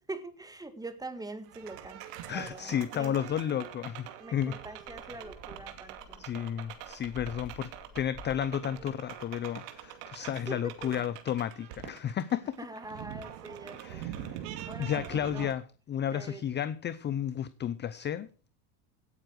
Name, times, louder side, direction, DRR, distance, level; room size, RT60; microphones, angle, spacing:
voice 1, 0.0-3.3 4.2-6.3 10.5-11.0 12.6-14.1 14.6-15.1 15.3-15.6 16.1-16.5, right 2 dB, 10° right, 1.8 m, -43 dB
sound 1, 1.4-15.5, right 11 dB, 80° right, 2.5 m, -44 dB
voice 2, 2.3-4.5 6.2-7.7 7.9-12.6 13.8-14.4 14.8-18.3, left 9 dB, 25° left, 0.5 m, -32 dB
sound 2, 4.2-11.0, left 4 dB, 50° left, 7.1 m, -53 dB
17.0 x 9.2 x 4.7 m
supercardioid pair, 125°, 47 cm